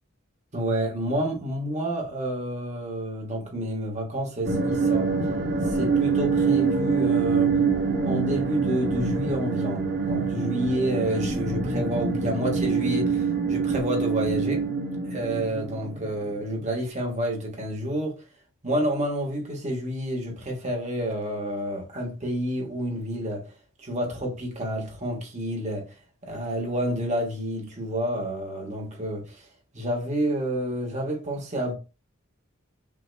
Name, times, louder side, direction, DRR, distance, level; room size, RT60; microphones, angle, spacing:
voice 1, 0.5-5.2 5.7-7.6 8.0-14.6 15.1-18.2 18.6-23.5 23.8-25.9 26.2-29.4 29.7-31.7, right 1 dB, 35° right, 1.4 m, -29 dB
sound 1, 4.4-16.4, right 4 dB, 55° right, 0.8 m, -25 dB
5.8 x 2.8 x 2.2 m
head